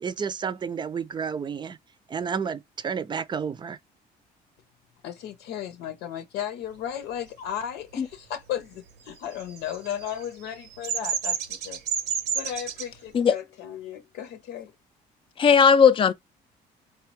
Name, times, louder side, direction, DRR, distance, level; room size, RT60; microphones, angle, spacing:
voice 1, 0.0-1.8 2.1-3.8, right 6 dB, 25° right, 0.4 m, -31 dB
voice 2, 5.0-11.8 12.3-14.7, left 10 dB, 85° left, 0.8 m, -35 dB
Bird vocalization bird call bird song, 9.2-12.9, right 7 dB, 80° right, 0.9 m, -30 dB
voice 3, 15.4-16.1, left 6 dB, 30° left, 0.4 m, -17 dB
4.2 x 2.3 x 3.0 m
cardioid pair, 110°, 17 cm